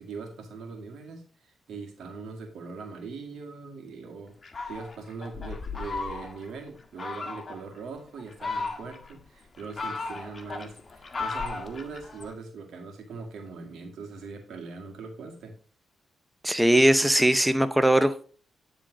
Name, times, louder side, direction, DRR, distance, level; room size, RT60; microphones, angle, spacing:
voice 1, 0.0-4.3 4.7-15.6, right 4 dB, 75° right, 3 dB, 1.9 m, -41 dB
Fowl, 4.4-6.5 7.0-7.6 8.2-9.1 9.5-12.3, left 4 dB, 40° left, 1.4 m, -35 dB
voice 2, 16.4-18.2, right 1 dB, 5° right, 11 dB, 0.6 m, -20 dB
9.7 x 3.8 x 5.0 m, 0.43 s
supercardioid pair, 55°, 0 cm